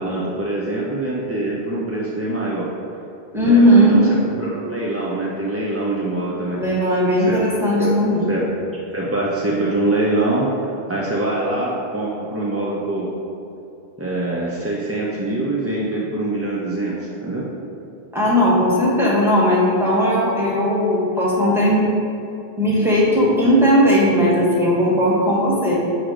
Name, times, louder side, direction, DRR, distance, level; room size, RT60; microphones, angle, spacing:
voice 1, 0.0-2.7 3.4-6.6 7.2-7.4 7.8-7.9 8.3-8.4 8.9-10.5 10.9-13.1 14.0-17.4, right 2 dB, 20° right, -5 dB, 0.3 m, -24 dB
voice 2, 3.3-4.0 6.5-8.2 18.1-21.9 22.6-25.8, equal, ahead, -7 dB, 1.2 m, -17 dB
6.2 x 3.1 x 4.9 m, 2.8 s
omnidirectional pair, 1.1 m